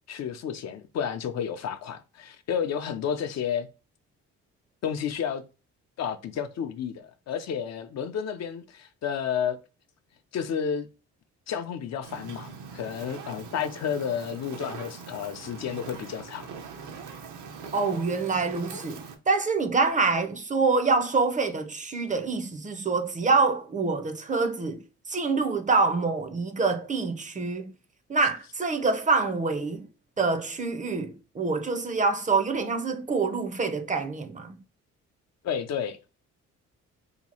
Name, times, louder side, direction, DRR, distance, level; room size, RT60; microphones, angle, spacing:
voice 1, 0.1-3.7 4.8-5.4 6.0-9.6 10.3-10.9 11.5-16.5 35.4-36.0, left 8 dB, 60° left, 0.5 m, -31 dB
Fire, 12.0-19.1, right 5 dB, 75° right, 0.7 m, -42 dB
voice 2, 17.7-24.8 25.1-27.7 28.1-29.9 30.2-34.6, right 4 dB, 25° right, 0.5 m, -26 dB
2.9 x 2.3 x 4.2 m
cardioid pair, 90°, 30 cm